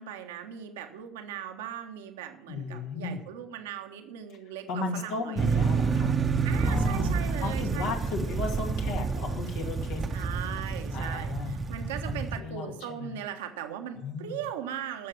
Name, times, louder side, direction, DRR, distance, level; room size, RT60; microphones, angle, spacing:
voice 1, 0.0-5.7 6.4-7.9 10.1-15.1, right 10 dB, 75° right, 5 dB, 1.3 m, -39 dB
voice 2, 2.5-3.2 4.7-6.2 6.6-10.3 10.9-11.5 12.1-13.2 14.0-14.4, left 4 dB, 70° left, 2 dB, 2.4 m, -35 dB
sound 1, 5.4-12.4, right 5 dB, 35° right, 1.0 m, -28 dB
14.5 x 6.7 x 6.9 m, 0.79 s
hypercardioid pair, 65°, 0 cm